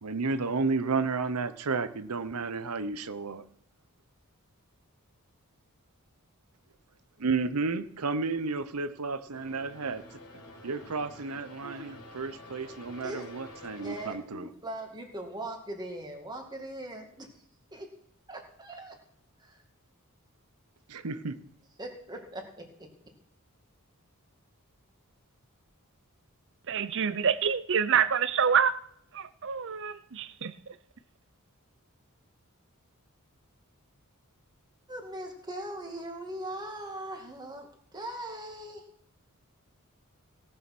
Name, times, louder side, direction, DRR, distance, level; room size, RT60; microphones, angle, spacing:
voice 1, 0.0-3.4 7.2-10.0 10.6-14.5 20.9-21.4, right 4 dB, 85° right, 0.9 m, -32 dB
sound 1, 9.3-14.2, left 2 dB, 80° left, 3.7 m, -48 dB
voice 2, 11.6-11.9 13.0-13.3 13.8-17.3 17.7-17.9 18.3-19.0 21.8-22.9 34.9-38.9, right 1 dB, 20° right, 2.2 m, -40 dB
voice 3, 26.7-28.8 29.1-30.5, right 7 dB, 55° right, 0.6 m, -27 dB
17.5 x 6.8 x 6.1 m
head